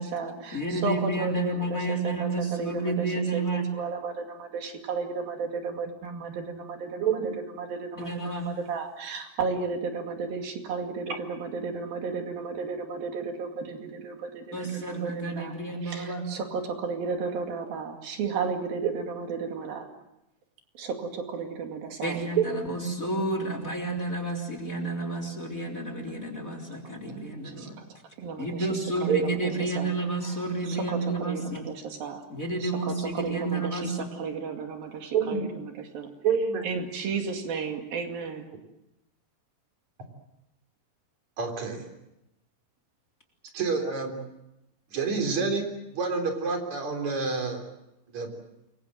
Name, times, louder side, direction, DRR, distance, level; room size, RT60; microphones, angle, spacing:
voice 1, 0.0-3.4 3.7-8.1 8.3-15.5 15.8-19.9 20.8-22.2 27.4-27.9 28.2-29.4 29.7-29.9 30.2-32.3 32.6-36.1 36.6-38.5, right 5 dB, 80° right, 4 dB, 4.2 m, -34 dB
voice 2, 0.5-3.7 8.0-8.5 14.5-16.2 22.0-27.8 28.4-31.6 32.3-33.9, right 2 dB, 20° left, 4 dB, 3.8 m, -30 dB
voice 3, 29.1-29.5 35.1-35.5 36.2-36.7 41.4-41.8 43.5-44.1 44.9-45.6 45.9-47.6 48.1-48.3, right 5 dB, 50° right, 4 dB, 5.0 m, -27 dB
28.5 x 23.0 x 7.7 m, 0.91 s
omnidirectional pair, 4.1 m